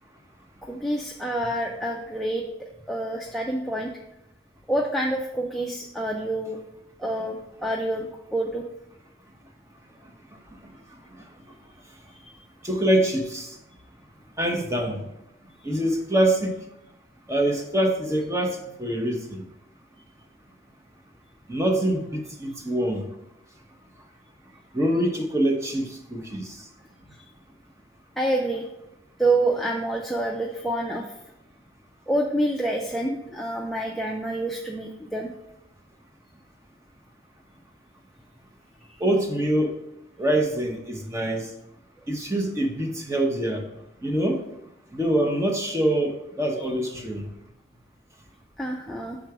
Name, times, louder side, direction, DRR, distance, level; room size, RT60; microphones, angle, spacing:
voice 1, 0.6-2.5 2.9-3.9 4.7-6.6 7.0-8.6 12.1-12.4 28.2-28.7 29.2-31.1 32.1-35.3 38.9-39.0 46.6-46.7 48.6-49.2, right 1 dB, ahead, -1 dB, 0.3 m, -27 dB
voice 2, 12.6-13.6 14.4-15.0 15.6-16.5 17.3-19.4 21.5-23.0 24.7-26.6 39.0-39.8 40.2-41.5 42.1-43.6 44.0-44.4 44.9-47.2, right 1 dB, 15° right, 3 dB, 0.7 m, -25 dB
6.0 x 3.8 x 4.6 m, 0.86 s
head